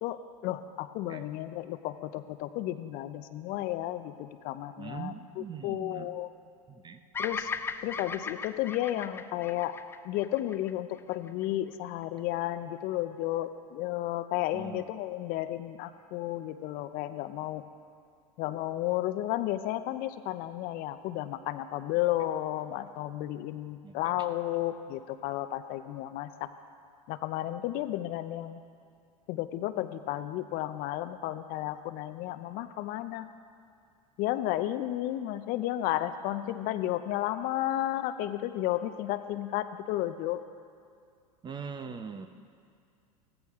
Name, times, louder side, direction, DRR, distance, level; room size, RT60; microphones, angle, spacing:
voice 1, 0.0-6.3 7.2-7.5 7.8-9.8 10.0-17.6 18.4-26.5 27.1-28.6 29.3-33.3 34.2-40.4, left 14 dB, 50° left, 11 dB, 0.6 m, -33 dB
voice 2, 4.8-6.1 6.7-7.0 14.5-14.8 23.8-24.2 41.4-42.3, right 6 dB, 20° right, 9 dB, 0.8 m, -42 dB
Bird vocalization bird call bird song, 7.1-11.4, left 5 dB, 10° left, 0.3 m, -38 dB
15.5 x 14.0 x 3.6 m, 2.3 s
hypercardioid pair, 95°, 20 cm